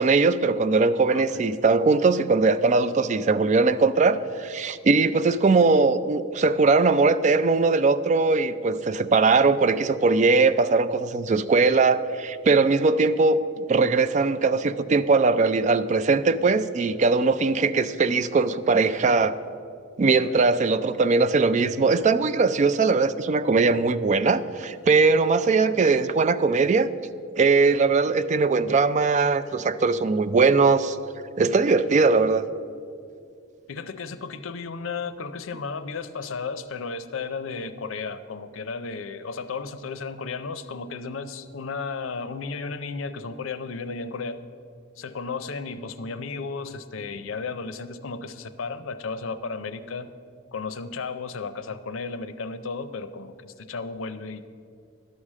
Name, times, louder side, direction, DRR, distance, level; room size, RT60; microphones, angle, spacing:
voice 1, 0.0-19.4 20.0-26.9 27.4-31.0 31.4-32.4, right 4 dB, 35° right, 13 dB, 0.3 m, -20 dB
voice 2, 20.2-20.5 33.7-44.4 45.0-50.1 50.5-54.4, left 4 dB, 85° left, 12 dB, 0.5 m, -34 dB
11.5 x 4.9 x 7.4 m, 2.3 s
head